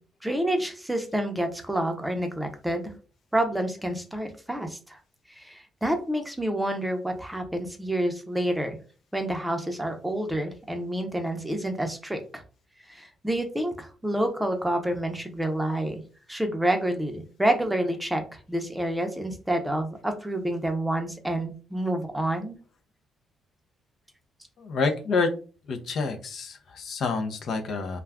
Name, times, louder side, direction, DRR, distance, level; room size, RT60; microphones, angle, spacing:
voice 1, 0.2-2.9 3.3-5.0 5.3-8.8 9.1-12.4 12.9-16.0 16.3-22.6, right 1 dB, 5° right, 5 dB, 0.6 m, -28 dB
voice 2, 24.6-25.3 25.7-28.0, left 4 dB, 65° left, 6 dB, 0.5 m, -28 dB
2.3 x 2.2 x 3.4 m, 0.37 s
cardioid pair, 90°, 0 cm